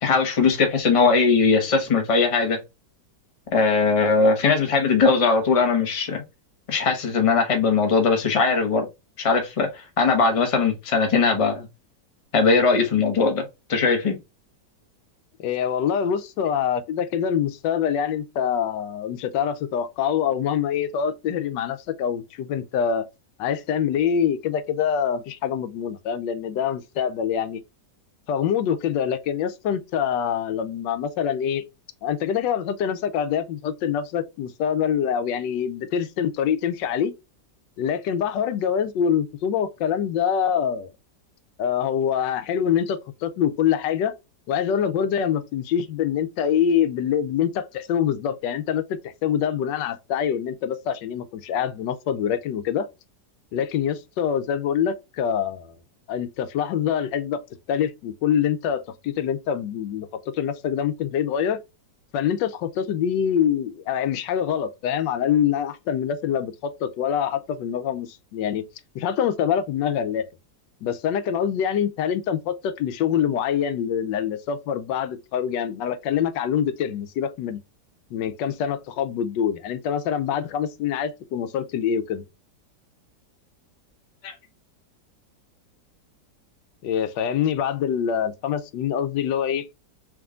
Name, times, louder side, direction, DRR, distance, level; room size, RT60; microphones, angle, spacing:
voice 1, 0.0-2.6 3.5-6.2 6.7-8.9 9.2-11.7 12.3-13.4 13.7-14.2 84.2-84.3, left 4 dB, 30° left, 0.6 m, -20 dB
voice 2, 15.4-23.1 23.4-27.6 28.3-31.6 32.0-37.1 37.8-40.9 41.6-44.1 44.5-52.9 53.5-55.7 56.1-57.4 57.7-60.1 60.3-61.6 62.1-68.6 68.9-70.2 70.8-77.6 78.1-82.2 86.8-89.7, left 8 dB, 90° left, 1.3 m, -25 dB
3.6 x 3.0 x 3.5 m
omnidirectional pair, 1.9 m